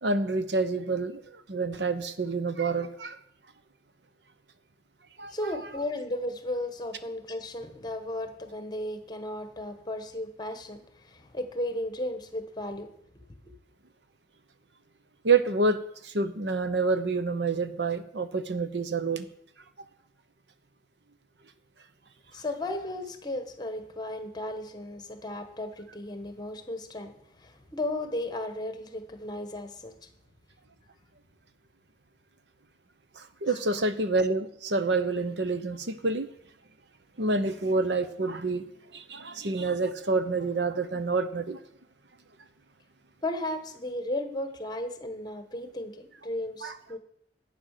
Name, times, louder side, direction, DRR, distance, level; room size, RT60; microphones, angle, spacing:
voice 1, 0.0-3.2 5.2-5.3 15.2-19.3 33.2-36.3 37.2-38.6 38.9-41.6 46.6-46.8, right 3 dB, 70° right, 11 dB, 0.9 m, -28 dB
voice 2, 5.3-12.9 13.1-13.5 22.3-30.1 33.5-33.6 43.2-47.0, left 1 dB, 25° left, 8 dB, 1.4 m, -35 dB
11.5 x 8.6 x 6.7 m, 0.71 s
head